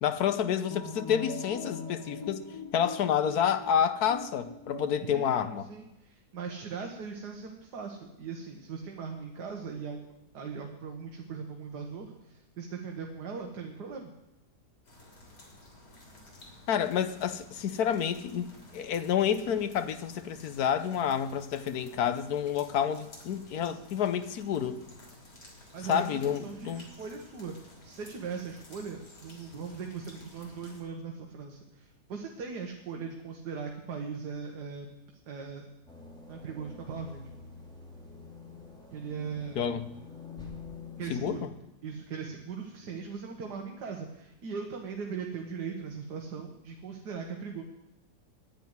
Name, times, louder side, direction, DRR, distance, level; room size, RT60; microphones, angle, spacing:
voice 1, 0.0-5.7 16.7-24.8 25.9-26.9 39.6-39.9 41.1-41.5, left 8 dB, 70° left, 11 dB, 1.3 m, -29 dB
sound 1, 0.7-5.6, left 4 dB, 20° left, 0.8 m, -42 dB
voice 2, 5.1-5.4 5.7-10.1 10.3-14.1 25.7-34.9 35.3-35.7 36.3-37.2 38.9-39.8 41.0-41.5 41.8-47.6, right 5 dB, 80° right, 2 dB, 1.8 m, -39 dB
sound 2, 14.8-30.8, left 1 dB, 90° left, 3.7 m, -53 dB
sound 3, 35.9-41.4, left 4 dB, 5° left, 2.5 m, -47 dB
10.5 x 9.2 x 9.4 m, 0.93 s
omnidirectional pair, 1.8 m